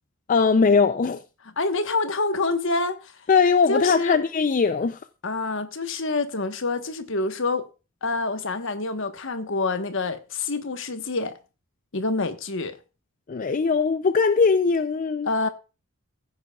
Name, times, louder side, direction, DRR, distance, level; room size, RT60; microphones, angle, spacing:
voice 1, 0.3-1.2 3.3-5.0 13.3-15.3, left 5 dB, 40° left, 0.4 m, -20 dB
voice 2, 1.6-3.0 3.7-4.2 5.2-7.6 8.0-11.3 11.9-12.7 15.3-15.5, left 3 dB, 65° left, 1.2 m, -26 dB
15.5 x 9.2 x 2.3 m
head